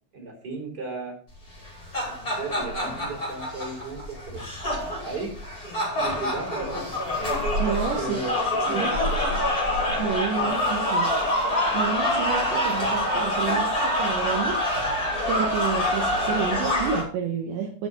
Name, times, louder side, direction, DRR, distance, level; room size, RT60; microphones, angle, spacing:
voice 1, 0.1-1.2 2.1-4.4 5.0-5.3 6.0-6.8 8.0-9.5 10.3-10.5 11.0-11.3, right 3 dB, 20° right, 0 dB, 4.6 m, -35 dB
sound 1, 1.6-17.0, left 1 dB, 20° left, 5.6 m, -26 dB
voice 2, 7.6-8.2 8.7-9.0 10.0-11.1 11.7-14.6 15.3-17.9, right 6 dB, 70° right, 2 dB, 3.5 m, -29 dB
9.9 x 8.5 x 5.7 m, 0.41 s
omnidirectional pair, 5.4 m